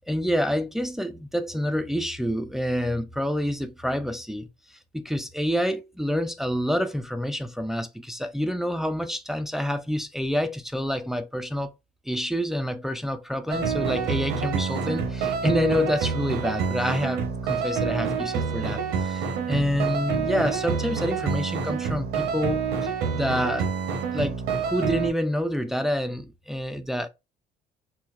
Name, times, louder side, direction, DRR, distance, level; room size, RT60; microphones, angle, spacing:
voice 1, 0.0-4.5 4.9-11.7 12.1-23.7 24.1-27.1, equal, ahead, 0.4 m, -27 dB
sound 1, 13.5-25.1, right 6 dB, 90° right, 1.0 m, -27 dB
4.3 x 2.1 x 2.4 m
cardioid pair, 110°, 17 cm